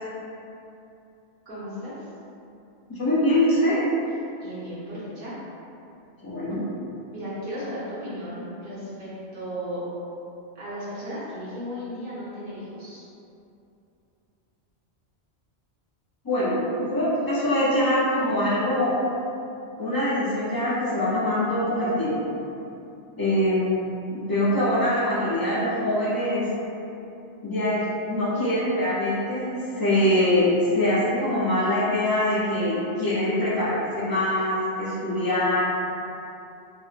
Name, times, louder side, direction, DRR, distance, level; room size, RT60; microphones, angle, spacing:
voice 1, 1.5-1.9 4.4-5.3 7.1-9.8 10.5-13.0, equal, 55° right, -10 dB, 1.1 m, -35 dB
voice 2, 2.9-3.8 6.2-6.6 16.2-18.9 19.8-22.2 23.2-23.8 24.1-26.5 27.4-35.6, left 1 dB, 40° left, -8 dB, 0.3 m, -23 dB
3.5 x 2.1 x 2.4 m, 2.7 s
omnidirectional pair, 1.1 m